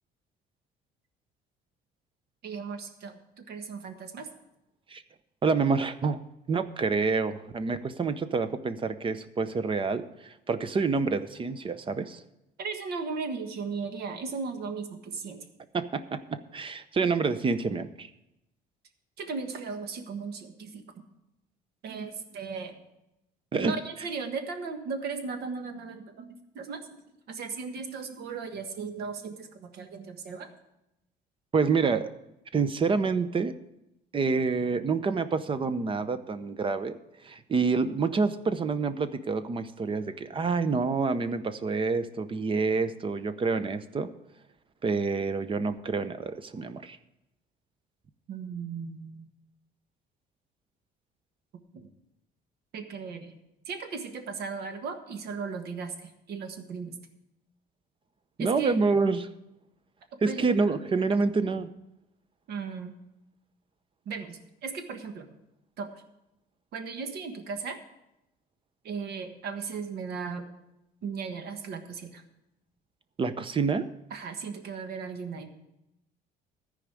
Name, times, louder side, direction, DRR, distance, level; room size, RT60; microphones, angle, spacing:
voice 1, 2.4-3.2 3.5-4.3 12.6-15.4 19.2-20.8 21.8-22.8 23.6-27.0 27.3-30.5 48.3-49.2 51.7-51.9 52.7-53.3 53.6-56.9 58.4-58.7 60.3-60.8 61.2-61.3 62.5-62.9 64.0-65.3 65.8-66.0 66.7-67.8 68.8-70.4 71.0-72.2 74.1-75.5, right 5 dB, 70° right, 6 dB, 1.5 m, -36 dB
voice 2, 5.4-6.2 6.5-12.2 15.7-18.1 23.5-23.7 31.5-32.1 32.5-33.5 34.1-37.0 37.2-44.1 44.8-47.0 58.4-59.3 60.2-61.7 73.2-73.9, right 4 dB, 30° right, 12 dB, 0.7 m, -27 dB
14.0 x 5.0 x 8.3 m, 0.88 s
cardioid pair, 110°, 17 cm